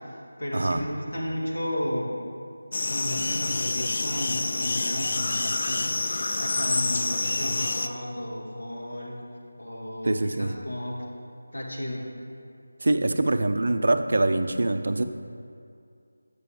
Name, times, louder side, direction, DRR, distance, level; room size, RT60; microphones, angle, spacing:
voice 1, 0.4-2.1 2.9-9.1 9.6-11.0 11.5-12.0, equal, 75° left, -3 dB, 1.7 m, -33 dB
sound 1, 2.7-7.9, left 3 dB, 45° left, 0.3 m, -27 dB
voice 2, 10.0-10.5 12.8-15.0, right 2 dB, 55° right, 7 dB, 0.4 m, -24 dB
8.7 x 6.7 x 3.4 m, 2.4 s
figure-of-eight pair, 165°, 0 cm